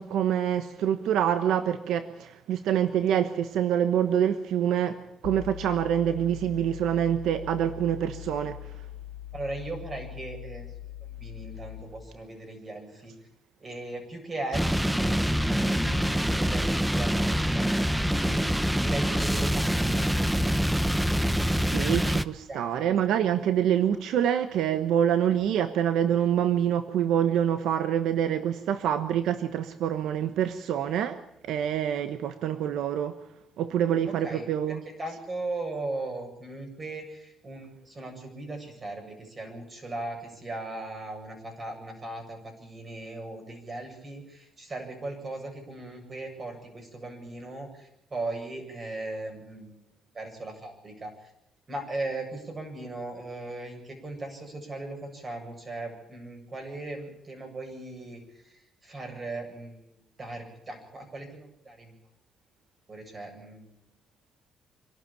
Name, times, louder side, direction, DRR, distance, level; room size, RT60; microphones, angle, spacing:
voice 1, 0.0-8.7 21.4-33.2 33.6-34.8, right 9 dB, 85° right, 1.1 m, -26 dB
sound 1, 5.2-12.0, left 12 dB, 70° left, 0.9 m, -42 dB
voice 2, 9.3-10.7 11.0-13.1 13.6-20.1 22.5-23.0 34.1-49.9 50.1-51.3 51.7-59.8 60.2-61.9 62.9-63.7, right 2 dB, 35° right, 8.0 m, -38 dB
sound 2, 14.5-22.2, equal, 5° right, 0.9 m, -25 dB
26.0 x 12.5 x 8.9 m
cardioid pair, 90°, 0 cm